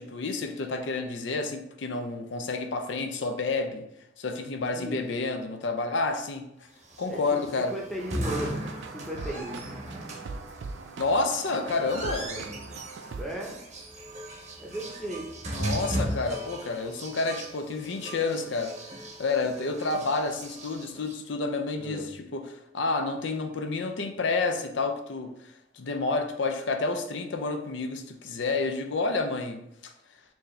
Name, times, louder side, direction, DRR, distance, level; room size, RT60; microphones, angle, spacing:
voice 1, 0.0-3.9 4.2-6.5 7.0-7.7 11.0-12.3 15.5-29.9, left 3 dB, 70° left, 6 dB, 0.5 m, -30 dB
sound 1, 6.8-21.1, right 1 dB, 40° right, 0.7 m, -37 dB
voice 2, 7.1-9.6 12.2-12.6 13.2-13.6 14.6-15.2 21.8-22.1, right 1 dB, ahead, -2 dB, 0.8 m, -36 dB
sound 2, 8.0-13.2, right 3 dB, 70° right, 0.4 m, -41 dB
4.6 x 2.7 x 3.2 m, 0.80 s
head